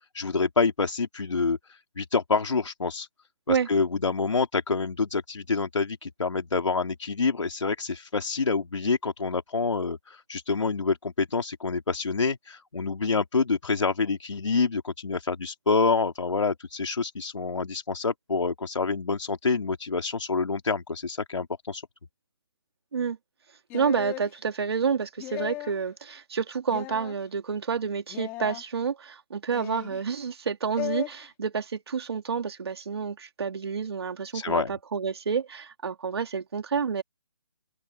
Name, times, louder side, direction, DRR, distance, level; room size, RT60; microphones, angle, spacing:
voice 1, 0.0-3.1 3.5-21.8 34.3-34.7, left 4 dB, 80° left, 3.7 m, -27 dB
sound 1, 23.7-24.3 25.2-25.8 26.7-27.1 28.1-28.6 29.5-30.0 30.8-31.1, left 18 dB, 15° left, 1.9 m, -36 dB
voice 2, 23.7-37.0, right 6 dB, 55° right, 2.7 m, -29 dB
open air
hypercardioid pair, 165°, 15 cm